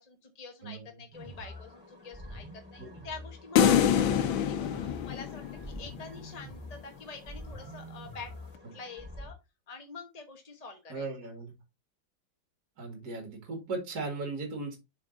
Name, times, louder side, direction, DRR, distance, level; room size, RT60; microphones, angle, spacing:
voice 1, 0.0-8.3 8.7-9.4 9.7-11.1, left 4 dB, 30° left, 4 dB, 0.8 m, -46 dB
sound 1, 1.1-9.3, left 1 dB, 5° right, 2.7 m, -46 dB
sound 2, 3.6-6.0, left 8 dB, 80° left, 1.6 m, -25 dB
voice 2, 10.9-11.5 12.8-14.8, right 3 dB, 50° right, 3 dB, 2.4 m, -37 dB
7.2 x 4.7 x 3.8 m, 0.24 s
omnidirectional pair, 2.1 m